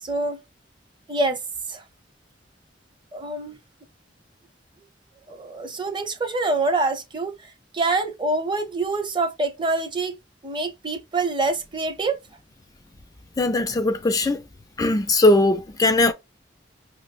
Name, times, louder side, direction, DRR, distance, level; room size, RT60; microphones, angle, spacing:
voice 1, 0.0-0.4 1.1-1.4 1.7-1.8 3.1-3.6 5.3-10.2 10.4-12.2, right 3 dB, 25° right, 0.7 m, -26 dB
voice 2, 13.4-14.4 14.8-16.1, left 2 dB, 20° left, 0.3 m, -19 dB
5.8 x 2.0 x 2.4 m
head